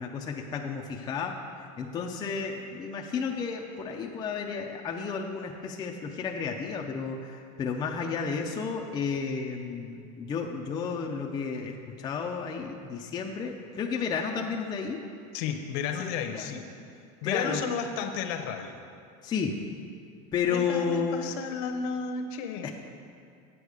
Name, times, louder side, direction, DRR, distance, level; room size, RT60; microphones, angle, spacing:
voice 1, 0.0-15.0 16.0-16.5 17.2-17.6 19.2-19.6 20.3-21.4 22.6-22.7, left 5 dB, 20° left, 1 dB, 0.5 m, -32 dB
voice 2, 15.3-16.6 17.2-18.8 20.5-22.7, left 6 dB, 60° left, 6 dB, 0.9 m, -32 dB
8.2 x 7.7 x 4.8 m, 2.4 s
supercardioid pair, 150°, 20 cm